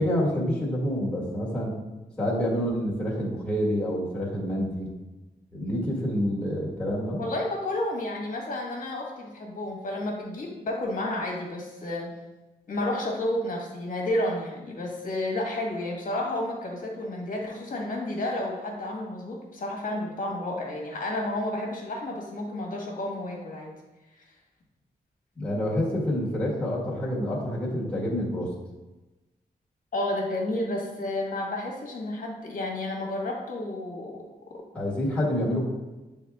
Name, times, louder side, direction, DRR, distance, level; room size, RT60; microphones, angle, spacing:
voice 1, 0.0-1.7 2.2-4.9 5.5-7.2 25.3-28.5 34.7-35.6, equal, 5° left, -7 dB, 1.6 m, -27 dB
voice 2, 7.2-12.1 12.7-23.7 29.9-34.2, left 1 dB, 55° left, -1 dB, 1.4 m, -31 dB
8.5 x 3.6 x 3.5 m, 1.1 s
wide cardioid pair, 170°, 16 cm